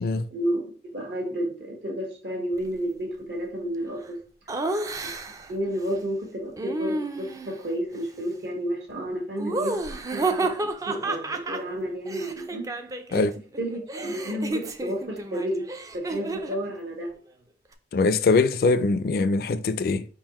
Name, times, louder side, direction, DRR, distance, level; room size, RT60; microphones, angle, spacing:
voice 1, 0.3-4.2 5.0-12.8 13.1-13.3 13.6-15.7 15.9-17.1, equal, 70° right, 1.3 m, -31 dB
Laughter, 4.5-5.5 6.6-7.6 9.4-13.3 13.5-16.6, right 2 dB, 20° right, 0.3 m, -31 dB
voice 2, 17.9-20.0, left 3 dB, 55° left, 0.3 m, -22 dB
4.6 x 3.8 x 3.0 m
head